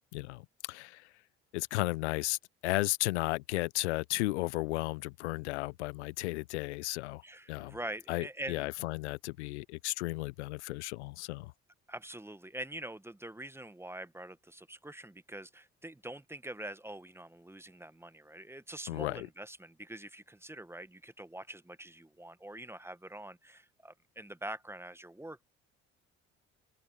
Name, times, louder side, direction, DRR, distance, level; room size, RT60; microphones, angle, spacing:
voice 1, 0.1-0.4 0.7-1.0 1.5-2.4 2.6-7.2 7.5-7.8 8.1-11.5 18.9-19.3, left 21 dB, 75° left, 1.1 m, -34 dB
voice 2, 7.2-8.7 11.9-25.4, right 1 dB, 5° right, 1.4 m, -45 dB
figure-of-eight pair, 50°, 35 cm